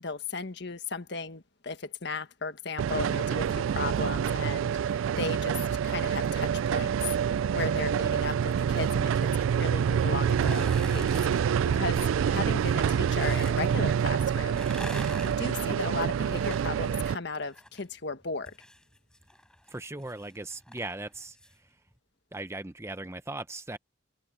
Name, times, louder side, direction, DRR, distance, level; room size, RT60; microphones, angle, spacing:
voice 1, 0.0-6.9 7.3-14.9 15.2-18.5, left 3 dB, 55° left, 1.5 m, -36 dB
sound 1, 2.8-17.1, right 8 dB, 75° right, 0.3 m, -27 dB
sound 2, 10.2-11.4 12.6-13.6 14.4-17.8 18.1-21.6 21.9-22.0, left 1 dB, 5° left, 8.0 m, -44 dB
voice 2, 19.7-21.4 22.3-23.8, right 2 dB, 15° right, 0.9 m, -38 dB
head